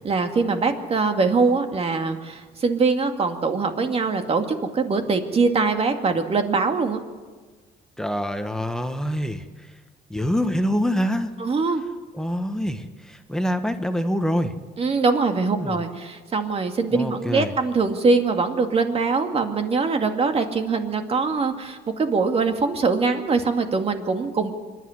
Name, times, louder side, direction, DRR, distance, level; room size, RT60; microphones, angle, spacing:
voice 1, 0.0-7.0 11.4-11.8 14.8-24.5, right 4 dB, 35° right, 6 dB, 2.2 m, -22 dB
voice 2, 8.0-9.5 10.1-11.3 12.2-14.5 15.5-15.8 16.9-17.5, equal, 5° left, 7 dB, 1.3 m, -25 dB
25.0 x 11.0 x 9.8 m, 1.4 s
cardioid pair, 110°, 17 cm